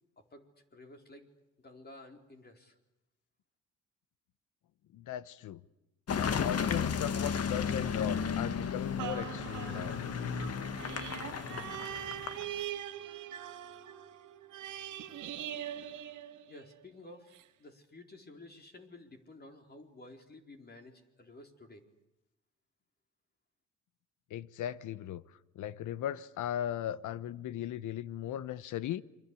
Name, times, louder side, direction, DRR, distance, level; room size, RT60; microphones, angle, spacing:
voice 1, 0.2-1.3 1.6-2.7 16.5-21.8, left 2 dB, 35° left, 4.3 m, -53 dB
voice 2, 4.9-5.6 6.1-10.2 24.3-25.2 25.5-29.0, left 11 dB, 80° left, 1.0 m, -37 dB
Car passing by / Engine, 6.1-12.6, left 6 dB, 55° left, 1.7 m, -34 dB
sound 1, 9.0-16.8 17.3-17.4, right 11 dB, 80° right, 2.0 m, -42 dB
29.0 x 23.5 x 8.5 m
cardioid pair, 90°, 30 cm